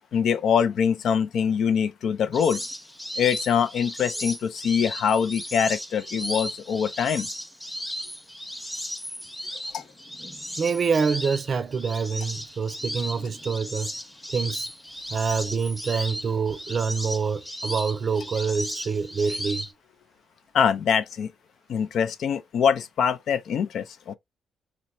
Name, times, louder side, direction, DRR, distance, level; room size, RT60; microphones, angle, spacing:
voice 1, 0.1-2.6 3.2-7.3 9.7-9.8 20.5-21.3 21.7-24.1, left 7 dB, 65° left, 0.4 m, -24 dB
sound 1, 2.3-19.7, equal, 5° left, 0.8 m, -36 dB
voice 2, 10.6-13.9 14.3-14.7 15.1-19.7, right 5 dB, 45° right, 0.5 m, -26 dB
4.2 x 2.1 x 2.4 m
cardioid pair, 90°, 0 cm